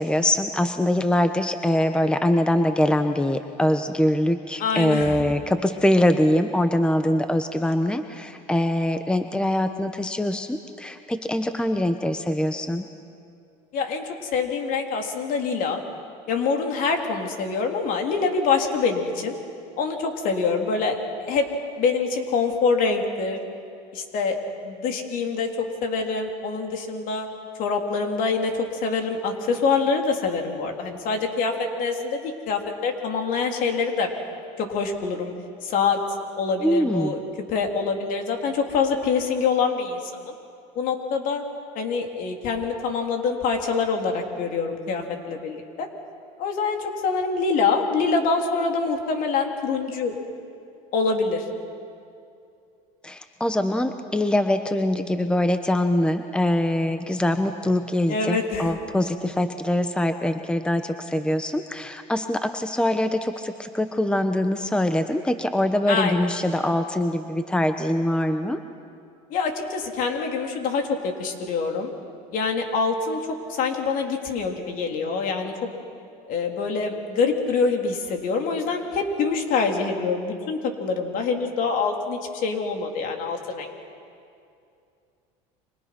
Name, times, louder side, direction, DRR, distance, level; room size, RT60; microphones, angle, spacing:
voice 1, 0.0-12.8 36.6-37.1 53.0-68.6, left 1 dB, 5° left, 8 dB, 1.1 m, -23 dB
voice 2, 4.6-5.3 13.7-15.8 16.3-19.3 19.8-21.5 21.8-23.4 23.9-24.4 24.6-27.3 27.6-34.1 34.6-35.3 35.6-36.0 36.4-37.2 37.5-40.0 40.3-40.4 40.8-41.4 41.8-45.9 46.4-50.2 50.9-51.4 58.1-58.8 65.9-66.3 69.3-71.9 72.3-73.2 73.5-75.5 76.3-83.7, left 4 dB, 60° left, 3 dB, 3.7 m, -25 dB
30.0 x 25.5 x 6.1 m, 2.5 s
supercardioid pair, 105°, 16 cm